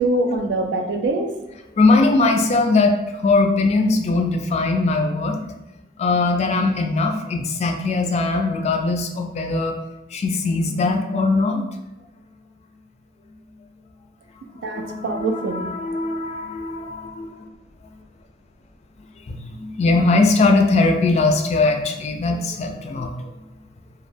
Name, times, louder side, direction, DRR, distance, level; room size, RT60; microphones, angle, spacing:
voice 1, 0.0-1.4 14.4-15.7, right 2 dB, 85° right, 4 dB, 0.3 m, -24 dB
voice 2, 1.8-3.0 3.2-5.4 6.0-9.8 10.1-11.6 14.7-17.3 19.3-23.3, left 3 dB, 40° left, 4 dB, 0.3 m, -20 dB
2.2 x 2.1 x 3.1 m, 0.95 s
head